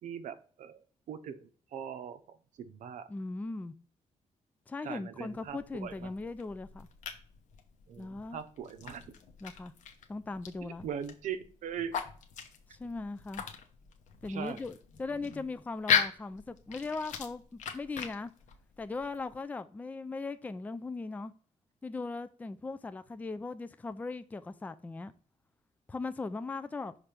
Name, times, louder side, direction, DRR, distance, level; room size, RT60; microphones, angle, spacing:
voice 1, 0.0-3.1 4.8-6.1 7.9-9.1 10.6-12.0 14.3-14.6, right 8 dB, 90° right, 0.6 m, -41 dB
voice 2, 3.1-3.7 4.7-6.9 8.0-8.4 9.4-9.7 10.1-10.9 12.7-13.4 14.2-18.3 18.8-21.3 21.8-25.1 25.9-27.0, left 3 dB, 10° left, 0.3 m, -39 dB
sound 1, 5.3-19.4, left 7 dB, 80° left, 0.9 m, -38 dB
6.0 x 3.2 x 5.0 m
wide cardioid pair, 140°, 12 cm